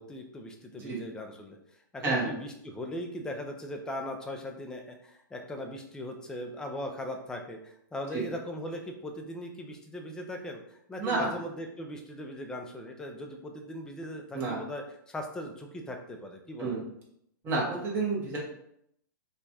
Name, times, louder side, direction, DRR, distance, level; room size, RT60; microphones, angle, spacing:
voice 1, 0.0-1.6 1.9-16.8, left 1 dB, 5° left, 3 dB, 0.3 m, -39 dB
voice 2, 11.0-11.3 14.3-14.6 16.6-16.8 17.4-18.4, right 3 dB, 20° right, -4 dB, 1.1 m, -29 dB
4.4 x 2.3 x 2.7 m, 0.73 s
hypercardioid pair, 150°, 11 cm